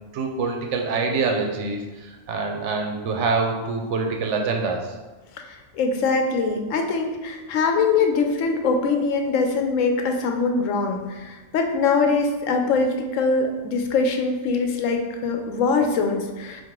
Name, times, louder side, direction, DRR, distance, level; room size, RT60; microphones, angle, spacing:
voice 1, 0.1-4.9, right 4 dB, 75° right, 3 dB, 0.9 m, -25 dB
voice 2, 5.3-16.6, left 4 dB, 85° left, 4 dB, 1.0 m, -23 dB
4.7 x 2.5 x 3.6 m, 1.2 s
omnidirectional pair, 1.3 m